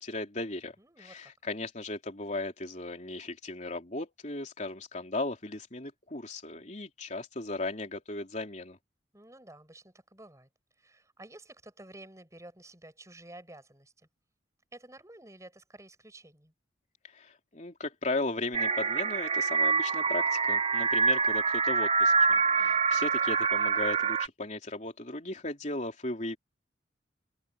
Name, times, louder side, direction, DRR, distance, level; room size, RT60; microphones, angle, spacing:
voice 1, 0.0-8.8 17.1-26.4, left 2 dB, 40° left, 3.6 m, -36 dB
voice 2, 0.8-1.3 9.1-10.5 10.8-14.1 14.7-16.5 22.4-22.8, right 1 dB, 15° right, 7.8 m, -51 dB
sound 1, 18.5-24.3, right 4 dB, 30° right, 0.6 m, -26 dB
open air
head